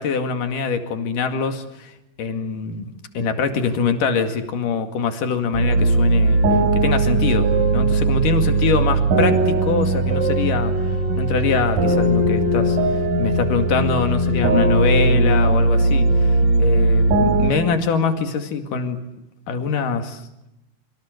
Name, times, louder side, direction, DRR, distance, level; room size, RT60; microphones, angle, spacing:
voice 1, 0.0-1.9 2.2-6.4 6.8-10.7 11.2-12.8 13.2-19.0 19.5-20.2, left 5 dB, 90° left, 7 dB, 3.8 m, -23 dB
sound 1, 5.5-17.5, right 2 dB, 75° right, 5.8 m, -18 dB
26.0 x 25.5 x 8.0 m, 0.86 s
omnidirectional pair, 3.7 m